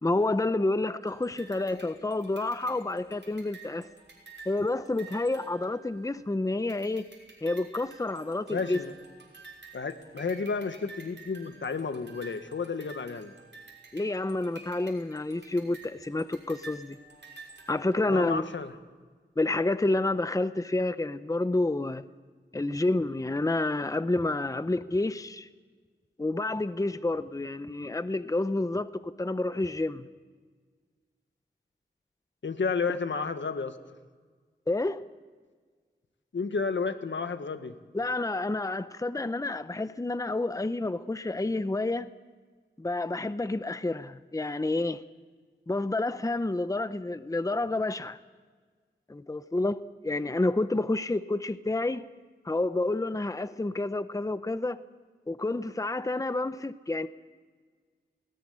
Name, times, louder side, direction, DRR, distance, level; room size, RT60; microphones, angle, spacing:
voice 1, 0.0-3.9 4.5-7.1 7.4-8.8 13.9-17.0 17.7-18.4 19.4-22.0 22.5-25.5 26.2-30.1 34.7-35.0 37.9-42.1 42.8-45.0 45.7-48.2 49.1-52.0 52.4-54.8 55.3-57.1, left 2 dB, 15° left, 0.8 m, -29 dB
sound 1, 1.0-6.3 6.7-18.2, right 3 dB, 70° right, 6.1 m, -51 dB
voice 2, 8.5-8.9 9.7-13.4 18.1-18.7 32.4-33.8 36.3-37.7, left 4 dB, 80° left, 1.4 m, -31 dB
20.0 x 18.0 x 10.0 m
wide cardioid pair, 65°, 19 cm